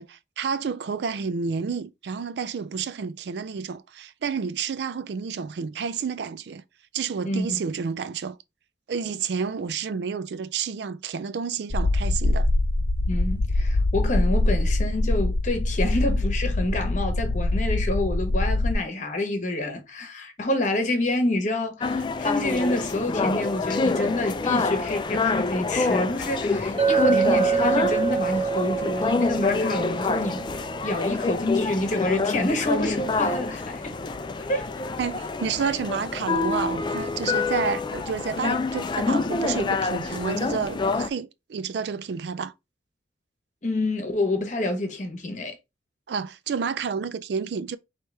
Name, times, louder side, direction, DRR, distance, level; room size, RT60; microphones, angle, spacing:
voice 1, 0.0-6.6 6.9-8.4 8.9-12.5 35.0-42.5 46.1-47.8, right 6 dB, 70° right, 0.4 m, -30 dB
voice 2, 7.2-7.6 13.1-30.4 30.8-34.1 34.4-34.7 43.6-45.6, left 1 dB, 45° left, 1.1 m, -27 dB
sound 1, 11.7-18.8, left 2 dB, 75° left, 0.7 m, -23 dB
sound 2, 21.8-41.1, left 3 dB, 25° left, 0.3 m, -27 dB
Chink clink, 26.8-31.2, right 6 dB, 30° right, 1.3 m, -26 dB
4.7 x 2.9 x 3.3 m
head